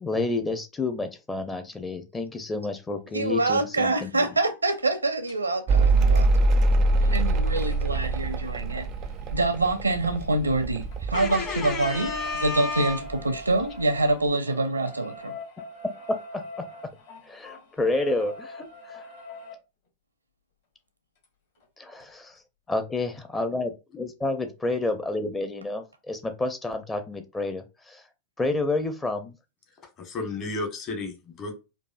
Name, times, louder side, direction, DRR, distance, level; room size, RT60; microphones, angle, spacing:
voice 1, 0.0-4.3 16.3-16.7 17.3-19.0 21.8-22.4 22.7-28.0 28.4-29.3, left 2 dB, 15° left, 0.6 m, -30 dB
voice 2, 3.1-6.5 7.0-8.9 9.3-12.1 12.4-15.4, right 2 dB, 80° right, 0.6 m, -26 dB
sound 1, 5.3-5.4 7.0-10.5 10.8-19.5 21.2-21.3 21.6-21.7 22.0-22.1, left 2 dB, 55° left, 1.9 m, -44 dB
Mechanical fan, 5.7-12.6 12.8-13.6, right 2 dB, 35° right, 0.4 m, -24 dB
voice 3, 11.1-13.0 30.0-31.5, left 3 dB, 35° left, 1.2 m, -32 dB
4.7 x 2.5 x 2.3 m
figure-of-eight pair, 90°, 0 cm